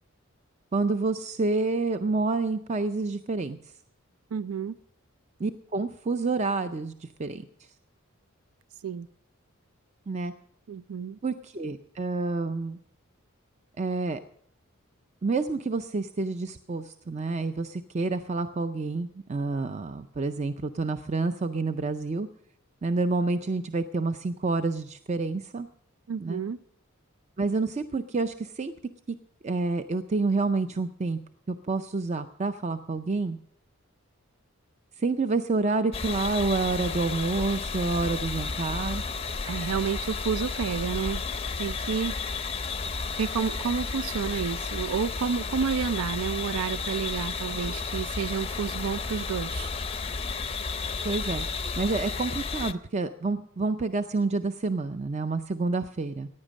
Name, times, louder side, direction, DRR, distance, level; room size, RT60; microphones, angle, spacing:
voice 1, 0.7-3.6 5.4-7.5 10.1-10.3 11.2-12.8 13.8-14.2 15.2-22.3 22.8-25.7 26.2-26.4 27.4-28.7 29.4-31.2 31.5-33.4 35.0-39.0 51.0-51.5 51.8-56.3, right 3 dB, 30° right, 10 dB, 0.4 m, -28 dB
voice 2, 4.3-4.7 8.8-9.1 10.7-11.2 26.1-26.6 39.5-41.2 41.6-42.2 43.2-49.7, right 6 dB, 85° right, 17 dB, 0.4 m, -30 dB
sound 1, 35.9-52.7, left 4 dB, 25° left, 0.5 m, -32 dB
15.0 x 9.8 x 6.3 m, 0.66 s
head